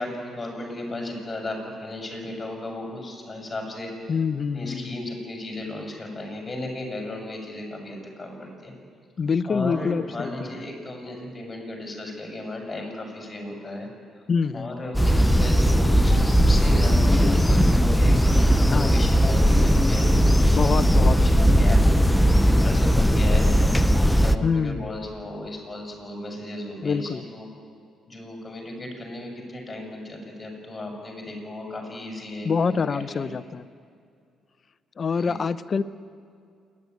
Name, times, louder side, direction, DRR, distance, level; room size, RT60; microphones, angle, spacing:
voice 1, 0.0-4.2 4.5-8.7 9.4-13.9 14.5-22.1 22.4-23.4 23.9-27.5 28.1-33.3 35.2-35.4, left 1 dB, 25° left, 1 dB, 6.7 m, -35 dB
voice 2, 4.1-5.0 9.2-10.5 14.3-14.8 18.7-18.9 20.5-21.2 24.4-24.9 26.8-27.2 32.4-33.7 35.0-35.8, left 5 dB, 45° left, 14 dB, 0.6 m, -26 dB
sound 1, 14.9-24.4, equal, 5° left, 0.7 m, -18 dB
28.0 x 11.0 x 9.5 m, 2.4 s
cardioid pair, 90°, 0 cm